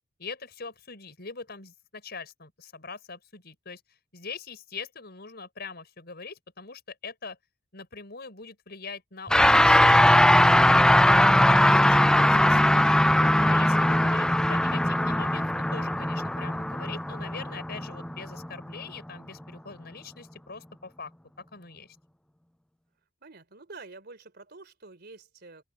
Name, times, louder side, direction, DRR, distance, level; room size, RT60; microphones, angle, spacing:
voice 1, 0.2-3.8 4.1-7.4 7.7-12.6 13.1-21.1 21.5-22.0, left 4 dB, 55° left, 6.4 m, -42 dB
sound 1, 9.3-18.8, left 1 dB, 5° left, 0.4 m, -20 dB
voice 2, 23.2-25.6, right 3 dB, 55° right, 3.7 m, -47 dB
open air
head